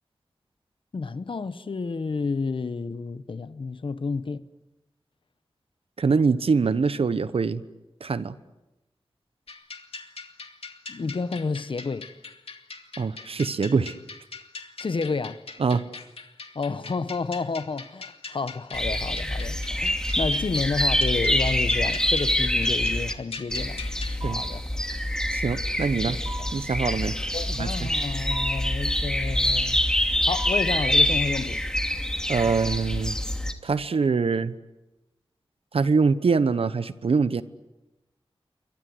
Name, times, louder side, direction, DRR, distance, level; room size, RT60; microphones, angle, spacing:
voice 1, 0.9-4.4 10.9-12.1 14.8-15.4 16.5-23.8 24.2-24.6 26.1-26.2 27.3-29.8 30.3-31.7 32.4-32.6, left 4 dB, 60° left, 1.1 m, -30 dB
voice 2, 6.0-7.6 8.0-8.4 13.0-13.9 15.6-15.8 24.2-24.4 25.3-26.2 26.5-27.2 27.5-27.9 32.3-33.2 33.6-34.5 35.7-37.4, right 5 dB, 75° right, 1.1 m, -24 dB
sound 1, 9.5-24.2, left 4 dB, 75° left, 2.3 m, -42 dB
sound 2, 18.7-23.1 23.5-33.5, left 1 dB, 5° left, 2.6 m, -25 dB
sound 3, 24.2-24.7 26.3-26.7 28.3-28.8 30.3-30.8 32.4-32.9, right 2 dB, 35° right, 4.4 m, -39 dB
28.5 x 24.0 x 8.0 m
wide cardioid pair, 80°, 10 cm